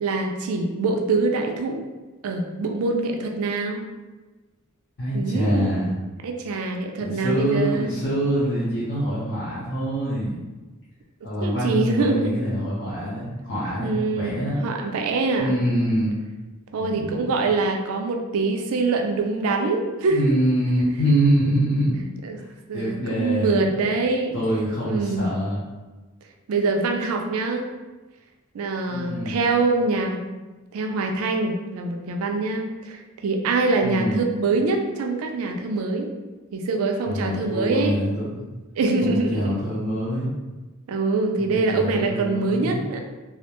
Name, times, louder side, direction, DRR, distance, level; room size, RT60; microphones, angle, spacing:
voice 1, 0.0-1.8 2.2-3.8 5.1-5.7 6.2-7.9 11.4-12.5 13.8-15.6 16.7-20.3 22.2-22.4 22.7-24.3 24.8-25.3 26.5-27.7 28.5-30.3 30.7-36.1 36.5-38.0 38.8-39.6 40.9-43.0, right 3 dB, 70° right, 3 dB, 0.4 m, -24 dB
voice 2, 5.0-5.9 7.0-10.4 11.2-14.5 15.4-16.1 16.8-17.4 20.1-22.0 22.4-22.5 22.7-23.7 24.3-25.6 28.9-29.4 33.8-34.2 37.1-38.2 39.0-40.3 41.4-42.8, equal, 60° left, -10 dB, 0.7 m, -25 dB
2.3 x 2.1 x 2.8 m, 1.2 s
head